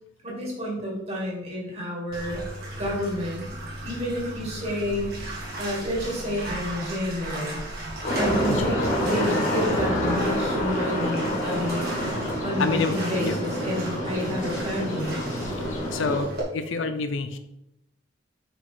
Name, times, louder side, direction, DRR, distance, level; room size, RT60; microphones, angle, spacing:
voice 1, 0.2-2.4 2.8-3.4 3.8-5.2 5.6-7.6 8.2-11.8 12.4-15.2, equal, 30° right, -3 dB, 2.4 m, -30 dB
Bathtub (filling or washing), 2.1-16.4, right 1 dB, 50° right, 2.2 m, -36 dB
sound 1, 8.0-16.2, equal, 40° left, 2.0 m, -27 dB
sound 2, 8.3-11.7, left 1 dB, 20° left, 0.4 m, -39 dB
voice 2, 12.6-12.9 13.2-13.4 15.9-17.4, left 4 dB, 70° left, 9 dB, 0.6 m, -27 dB
5.9 x 5.7 x 4.0 m, 0.82 s
head